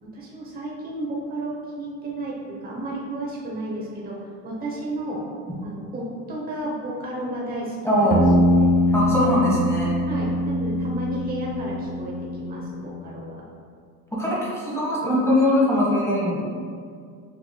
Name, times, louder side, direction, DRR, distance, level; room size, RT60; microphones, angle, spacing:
voice 1, 0.0-5.2 5.6-8.1 10.1-13.4, right 1 dB, 20° right, -5 dB, 1.0 m, -32 dB
voice 2, 7.8-8.3 8.9-9.9 14.1-16.4, left 1 dB, 5° left, -7 dB, 1.2 m, -21 dB
sound 1, 8.1-12.8, left 1 dB, 40° right, 0.6 m, -22 dB
6.4 x 2.9 x 2.3 m, 2.1 s
supercardioid pair, 100°, 42 cm